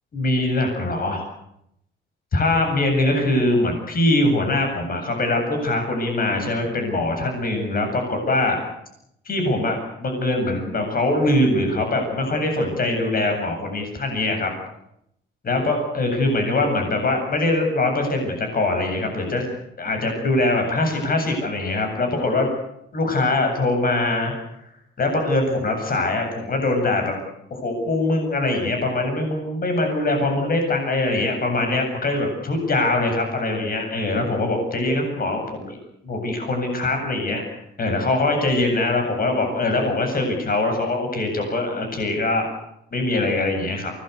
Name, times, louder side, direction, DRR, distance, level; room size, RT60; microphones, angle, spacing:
voice 1, 0.1-1.3 2.3-8.6 9.2-14.5 15.4-19.4 19.8-22.5 22.9-24.3 25.0-27.1 27.5-35.8 36.0-37.4 37.8-42.5 42.9-43.9, left 2 dB, 45° left, 4 dB, 7.9 m, -22 dB
24.5 x 20.5 x 8.1 m, 0.79 s
cardioid pair, 90°, 20 cm